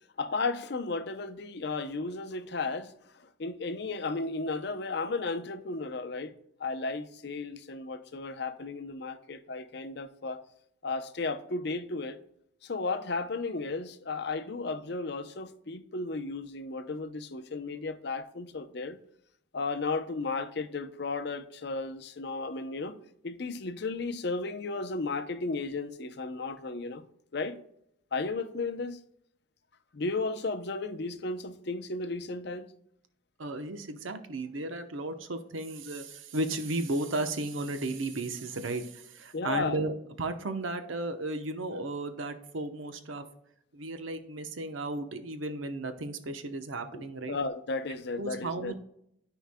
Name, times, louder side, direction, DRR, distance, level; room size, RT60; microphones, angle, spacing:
voice 1, 0.2-10.4 10.8-12.2 12.6-19.0 19.5-27.6 28.1-29.0 29.9-32.7 39.3-39.9 46.9-47.0 47.3-48.7, left 3 dB, 55° left, 0.6 m, -34 dB
voice 2, 33.4-43.2 43.7-47.4 48.2-48.8, right 2 dB, 85° right, 0.8 m, -34 dB
12.5 x 4.6 x 2.2 m
head